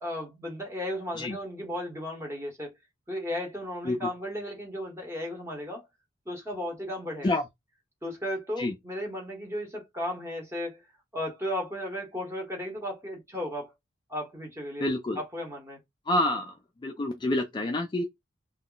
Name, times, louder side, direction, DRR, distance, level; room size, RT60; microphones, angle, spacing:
voice 1, 0.0-2.8 3.1-5.9 6.3-7.4 8.0-10.8 11.1-13.7 14.1-14.9 15.2-15.8, left 1 dB, 15° right, 0.8 m, -35 dB
voice 2, 14.8-15.2 16.1-16.5 16.8-18.0, left 1 dB, 20° left, 0.3 m, -27 dB
2.2 x 2.0 x 3.7 m
head